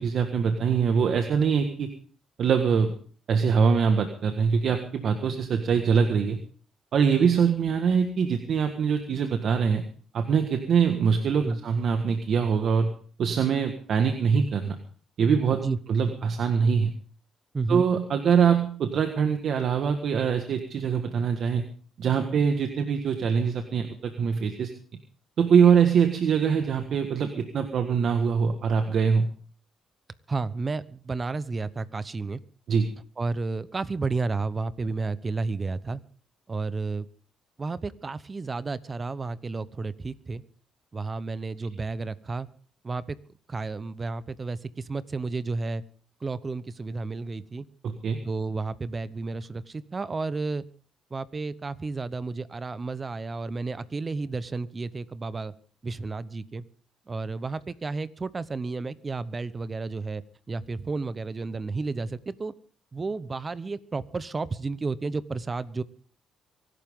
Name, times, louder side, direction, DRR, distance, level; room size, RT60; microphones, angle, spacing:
voice 1, 0.0-1.9 2.4-2.9 3.3-6.4 6.9-9.8 10.1-12.9 13.2-14.8 15.2-15.6 15.9-16.9 17.7-21.6 22.0-24.7 25.4-29.3 32.7-32.9 47.8-48.2, right 6 dB, 60° right, 6 dB, 1.6 m, -23 dB
voice 2, 17.5-17.9 30.3-32.4 33.2-36.0 36.5-37.1 37.6-40.4 40.9-42.5 42.8-43.2 43.5-45.8 46.2-47.7 48.2-50.6 51.1-55.5 55.8-56.6 57.1-60.2 60.5-62.5 62.9-65.8, right 3 dB, 30° right, 16 dB, 0.9 m, -32 dB
24.0 x 12.0 x 3.8 m, 0.43 s
cardioid pair, 90°, 0 cm